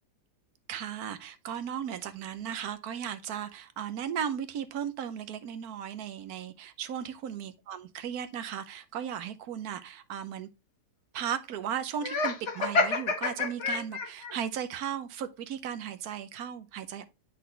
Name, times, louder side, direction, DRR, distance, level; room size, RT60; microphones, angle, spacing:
voice 1, 0.7-10.5 11.1-17.0, right 8 dB, 70° right, 1.2 m, -36 dB
Laughter, 12.0-14.3, left 3 dB, 45° left, 1.4 m, -28 dB
10.0 x 3.9 x 3.2 m
omnidirectional pair, 1.8 m